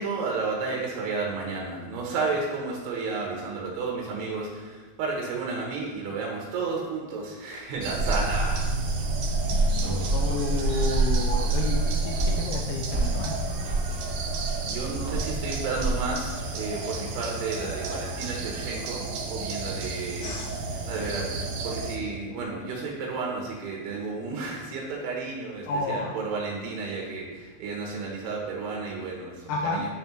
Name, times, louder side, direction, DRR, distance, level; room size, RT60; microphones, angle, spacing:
voice 1, 0.0-8.7 13.9-14.0 14.7-20.4 20.9-21.3 21.6-29.3 29.7-29.9, right 4 dB, 85° right, -2 dB, 3.1 m, -32 dB
sound 1, 7.8-22.0, right 2 dB, 70° right, 2.4 m, -33 dB
sound 2, 7.9-16.1, right 2 dB, 55° right, 1.5 m, -27 dB
voice 2, 10.1-13.4 20.2-20.6 25.7-26.2 29.5-29.8, left 3 dB, 90° left, 1 dB, 1.9 m, -31 dB
10.0 x 5.4 x 3.0 m, 1.3 s
omnidirectional pair, 4.6 m